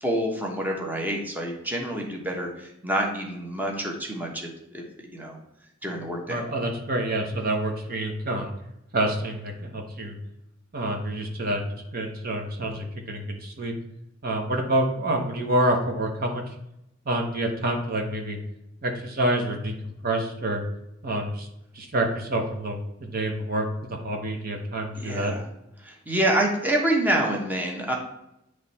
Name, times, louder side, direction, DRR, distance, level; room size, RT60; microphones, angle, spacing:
voice 1, 0.0-4.8 5.1-5.4 5.8-6.4 25.0-25.4 25.8-27.9, right 1 dB, 10° right, 0 dB, 1.1 m, -27 dB
voice 2, 6.3-8.5 8.9-10.2 10.7-11.6 11.9-13.7 14.2-16.6 17.1-18.4 18.8-20.6 21.0-21.5 21.7-25.3, right 1 dB, 50° right, 2 dB, 1.0 m, -27 dB
9.6 x 3.2 x 4.2 m, 0.85 s
head